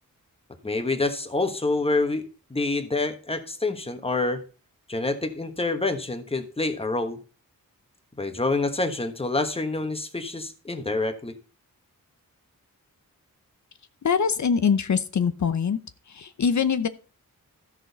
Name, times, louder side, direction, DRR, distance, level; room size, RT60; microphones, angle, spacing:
voice 1, 0.6-2.2 2.5-4.4 4.9-7.2 8.2-11.4, left 3 dB, 15° left, 8 dB, 1.2 m, -27 dB
voice 2, 14.0-15.8 16.1-16.9, left 6 dB, 55° left, 12 dB, 0.7 m, -23 dB
13.5 x 6.2 x 4.0 m, 0.38 s
wide cardioid pair, 110°, 34 cm